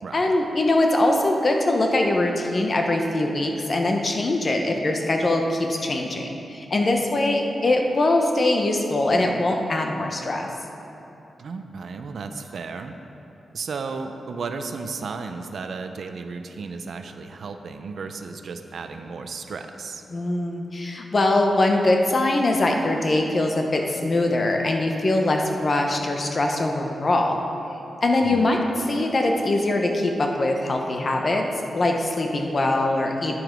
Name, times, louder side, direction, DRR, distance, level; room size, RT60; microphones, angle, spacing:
voice 1, 0.1-10.5 20.1-27.4 28.0-28.6 28.9-31.5 31.7-33.4, left 2 dB, 35° left, 2 dB, 0.8 m, -22 dB
voice 2, 11.4-13.0 13.5-20.0 28.2-28.5, right 4 dB, 60° right, 7 dB, 0.5 m, -34 dB
9.7 x 7.6 x 5.1 m, 3.0 s
wide cardioid pair, 160°, 0 cm